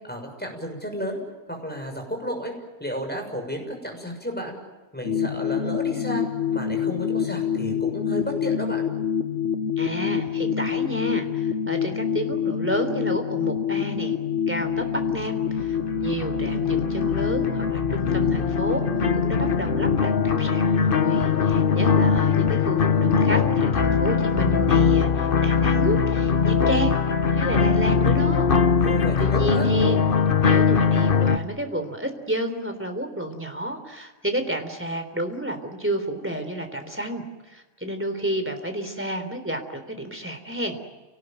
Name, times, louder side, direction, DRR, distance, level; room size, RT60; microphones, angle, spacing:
voice 1, 0.1-1.2 1.5-2.5 2.8-4.6 4.9-6.2 6.5-8.9 28.8-29.7, equal, 10° left, 2 dB, 6.7 m, -32 dB
sound 1, 5.0-24.0, left 8 dB, 80° left, 1.6 m, -27 dB
voice 2, 9.8-14.2 14.5-18.9 19.1-27.0 27.3-28.5 29.2-30.1 30.4-40.8, right 1 dB, 10° right, 6 dB, 3.6 m, -30 dB
sound 2, 15.0-31.4, left 6 dB, 50° left, 1.2 m, -22 dB
29.0 x 19.0 x 9.2 m, 1.2 s
omnidirectional pair, 1.2 m